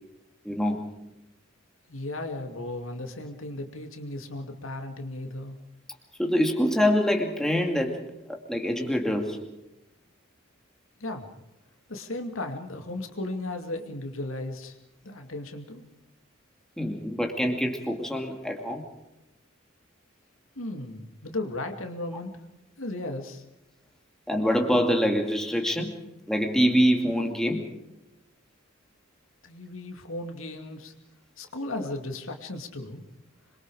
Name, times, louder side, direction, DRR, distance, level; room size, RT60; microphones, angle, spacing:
voice 1, 0.4-0.9 6.2-8.0 8.3-9.4 16.8-18.8 24.3-26.0 26.3-27.7, equal, 5° left, 2 dB, 2.4 m, -25 dB
voice 2, 1.9-5.6 11.0-11.3 11.9-14.8 15.0-15.8 20.6-22.3 22.8-23.4 29.4-30.9 31.4-33.0, left 2 dB, 80° left, 4 dB, 2.6 m, -35 dB
26.0 x 23.0 x 4.9 m, 0.89 s
head